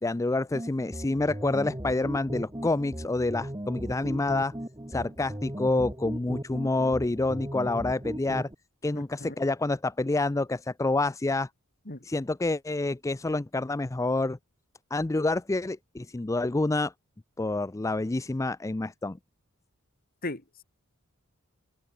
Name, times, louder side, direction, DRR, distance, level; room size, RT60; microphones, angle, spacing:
voice 1, 0.0-4.5 4.9-8.5 8.8-11.5 12.0-14.4 14.9-16.9 17.4-19.2, left 2 dB, 15° left, 0.4 m, -28 dB
sound 1, 0.5-8.5, equal, 20° right, 2.5 m, -37 dB
voice 2, 8.9-9.4 11.9-12.0 20.2-20.6, left 2 dB, 45° left, 3.0 m, -37 dB
head